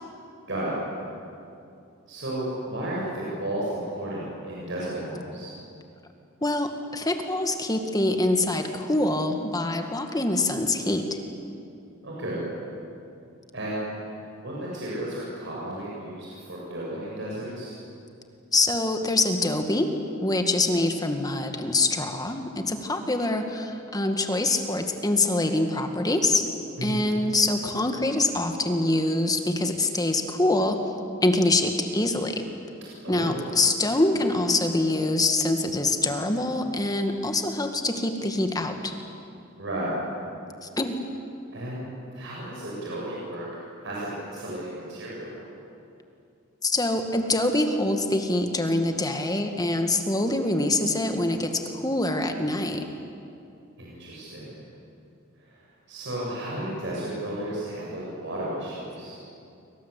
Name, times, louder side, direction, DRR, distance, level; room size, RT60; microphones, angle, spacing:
voice 1, 2.1-5.5 12.0-12.5 13.5-13.9 14.2-17.8 26.8-27.1 33.0-33.4 39.6-40.0 41.5-43.5 43.8-45.4 53.8-54.6 55.4-59.2, right 1 dB, 65° right, -5 dB, 7.2 m, -33 dB
voice 2, 6.4-11.0 18.5-19.9 20.2-26.5 26.8-30.8 31.2-32.4 33.1-39.0 40.6-41.0 46.6-52.9, left 2 dB, 20° left, 5 dB, 2.0 m, -25 dB
28.5 x 24.5 x 8.4 m, 2.6 s
head